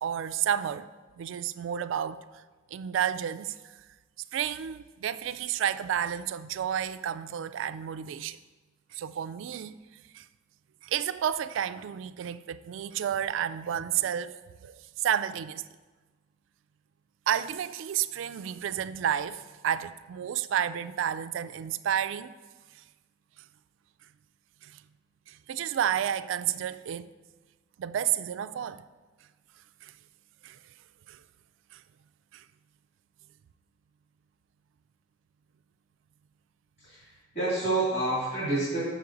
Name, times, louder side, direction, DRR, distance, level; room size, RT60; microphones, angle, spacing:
voice 1, 0.0-0.9 1.2-2.2 2.7-3.6 4.3-8.4 8.9-9.8 10.1-10.2 10.8-14.3 14.6-15.6 17.3-22.3 24.6-24.8 25.3-27.1 27.8-28.8 29.8-29.9 30.4-30.6 31.1-31.2 31.7-31.8 32.3-32.4, right 9 dB, 70° right, 0.3 m, -31 dB
voice 2, 36.8-38.8, right 2 dB, 50° left, 2.6 m, -29 dB
6.9 x 6.6 x 3.8 m
head